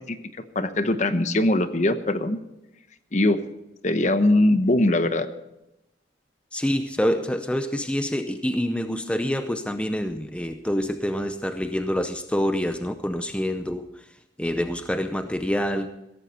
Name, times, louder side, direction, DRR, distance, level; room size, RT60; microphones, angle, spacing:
voice 1, 0.5-2.4 3.1-3.4 3.8-5.3, left 1 dB, 40° left, 10 dB, 1.0 m, -21 dB
voice 2, 6.5-13.8 14.4-15.9, equal, 5° left, 8 dB, 0.6 m, -26 dB
16.5 x 14.5 x 4.3 m, 0.90 s
head